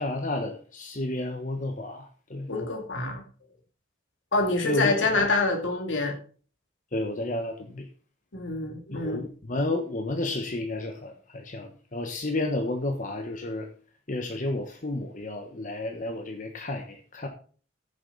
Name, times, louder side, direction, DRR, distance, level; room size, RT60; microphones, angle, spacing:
voice 1, 0.0-2.5 4.6-5.3 6.9-7.8 8.9-13.7 14.1-17.3, left 2 dB, 40° left, 4 dB, 1.2 m, -31 dB
voice 2, 2.5-3.2 4.3-6.2 8.3-9.3, left 3 dB, 75° left, 2 dB, 2.3 m, -26 dB
14.5 x 7.3 x 4.1 m, 0.41 s
head